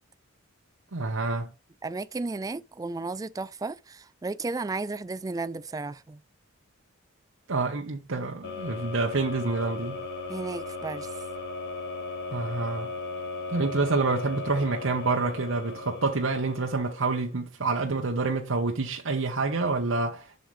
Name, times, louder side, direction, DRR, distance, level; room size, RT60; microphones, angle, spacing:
voice 1, 0.9-1.5 7.5-10.0 12.3-12.9 13.5-20.4, right 3 dB, 70° right, 0.9 m, -27 dB
voice 2, 1.8-6.2 10.3-11.2, right 3 dB, 20° right, 0.3 m, -34 dB
sound 1, 8.4-17.4, left 3 dB, 55° left, 2.4 m, -37 dB
7.8 x 6.4 x 3.2 m
head